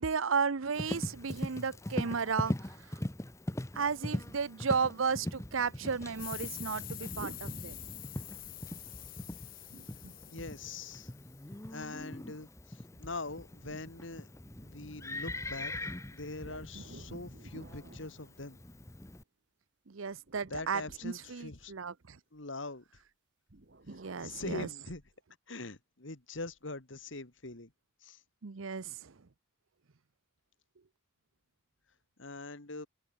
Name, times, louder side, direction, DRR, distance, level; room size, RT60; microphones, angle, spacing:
voice 1, 0.0-2.5 3.8-7.7 19.9-22.2 23.9-24.7 28.4-29.1, right 5 dB, 80° right, 0.7 m, -34 dB
Livestock farm animals working animals, 0.7-19.2, left 1 dB, 15° left, 1.0 m, -41 dB
sound 1, 6.1-11.5, left 16 dB, 45° left, 0.7 m, -46 dB
sound 2, 7.2-8.6 9.6-11.2 12.9-14.9 16.4-19.0 20.1-22.0 23.5-24.5, right 2 dB, 55° right, 1.4 m, -54 dB
voice 2, 10.3-11.1 11.7-14.3 14.6-15.7 16.1-18.6 20.5-21.7 22.3-22.8 24.2-25.0 25.5-27.7 28.0-28.2 32.2-32.9, left 3 dB, 70° left, 2.1 m, -43 dB
head